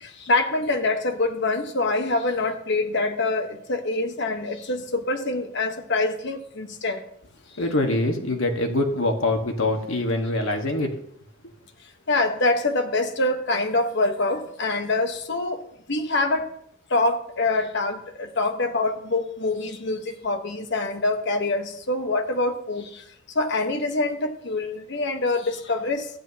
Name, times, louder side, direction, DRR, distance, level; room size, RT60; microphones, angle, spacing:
voice 1, 0.0-7.0 12.1-15.6 15.9-16.5 16.9-23.0 23.3-26.0, left 2 dB, 60° left, 6 dB, 1.1 m, -25 dB
voice 2, 7.6-11.0, left 2 dB, 75° left, 3 dB, 1.4 m, -24 dB
13.5 x 9.4 x 2.8 m, 0.70 s
head